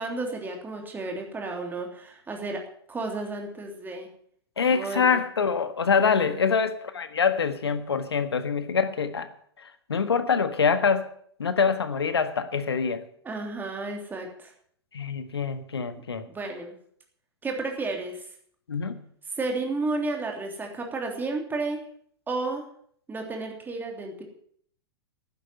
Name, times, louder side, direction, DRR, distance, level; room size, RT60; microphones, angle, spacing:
voice 1, 0.0-4.1 4.7-5.2 6.0-6.5 13.2-14.5 16.3-16.8 17.4-18.3 19.3-21.8 22.3-22.6 23.1-24.2, right 3 dB, 15° right, 2 dB, 3.2 m, -32 dB
voice 2, 4.6-9.3 9.6-11.1 11.4-13.0 14.9-16.3 18.7-19.0, left 6 dB, 75° left, 10 dB, 1.5 m, -25 dB
11.5 x 10.0 x 7.9 m, 0.63 s
figure-of-eight pair, 105°, 13 cm